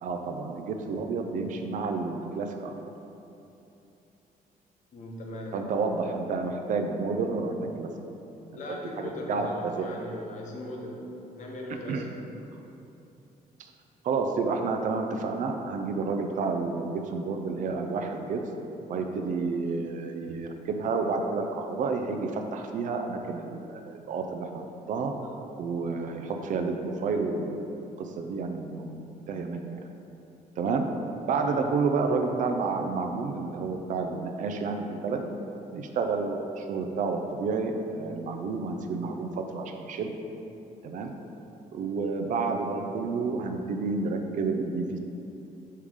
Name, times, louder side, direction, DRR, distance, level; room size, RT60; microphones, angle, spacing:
voice 1, 0.0-2.7 5.5-7.9 8.6-9.9 11.9-12.0 14.0-18.4 18.9-25.1 25.6-29.6 30.6-30.9 31.2-35.3 35.7-40.1 40.8-41.1 41.7-45.0, right 4 dB, 60° right, 4 dB, 0.5 m, -30 dB
voice 2, 4.9-5.6 8.5-12.3 31.4-31.6, left 1 dB, 55° left, -1 dB, 0.9 m, -39 dB
5.6 x 3.6 x 4.8 m, 2.9 s
cardioid pair, 165°, 15 cm